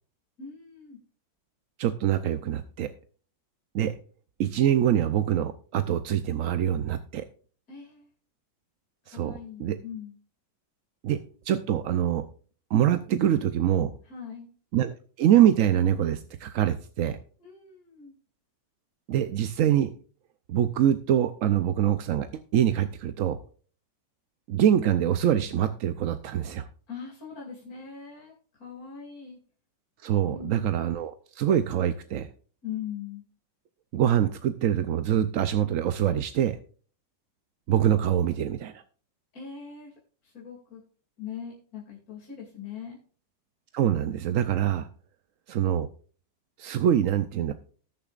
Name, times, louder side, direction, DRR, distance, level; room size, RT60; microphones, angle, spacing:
voice 1, 0.4-1.0 7.7-8.1 9.1-10.1 14.0-14.5 17.4-18.1 26.9-29.4 30.2-30.7 32.6-33.2 39.3-39.9 40.2-40.8 41.2-43.0, left 7 dB, 55° left, -3 dB, 3.0 m, -41 dB
voice 2, 1.8-2.9 3.7-3.9 4.4-7.2 9.1-9.8 11.0-11.2 11.5-12.3 12.7-13.9 14.7-17.2 19.1-19.9 20.5-22.3 22.5-23.4 24.5-26.7 30.0-32.3 33.9-36.6 37.7-38.7 43.7-44.9 45.5-45.9 46.6-47.5, right 10 dB, 65° right, 10 dB, 0.8 m, -24 dB
19.0 x 6.9 x 2.4 m, 0.41 s
omnidirectional pair, 1.9 m